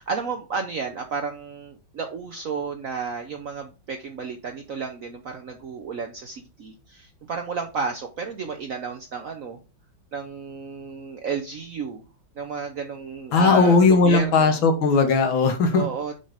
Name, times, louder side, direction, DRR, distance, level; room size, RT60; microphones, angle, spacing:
voice 1, 0.0-9.6 10.1-12.0 12.3-14.6 15.7-16.1, right 5 dB, 65° right, 4 dB, 0.8 m, -32 dB
voice 2, 13.3-15.8, left 4 dB, 75° left, 6 dB, 1.9 m, -18 dB
6.3 x 3.8 x 4.9 m, 0.32 s
omnidirectional pair, 2.2 m